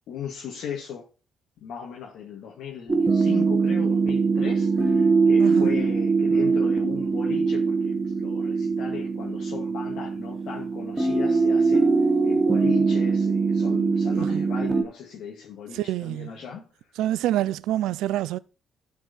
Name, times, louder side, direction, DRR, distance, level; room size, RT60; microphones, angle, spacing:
voice 1, 0.1-1.1 1.6-11.9 12.2-16.7, left 8 dB, 70° left, 2.0 m, -37 dB
sound 1, 2.9-14.8, right 4 dB, 30° right, 1.4 m, -22 dB
voice 2, 5.4-5.8 14.2-14.4 15.7-16.3 17.0-18.4, right 13 dB, 75° right, 0.4 m, -27 dB
11.5 x 4.8 x 4.1 m
hypercardioid pair, 45°, 0 cm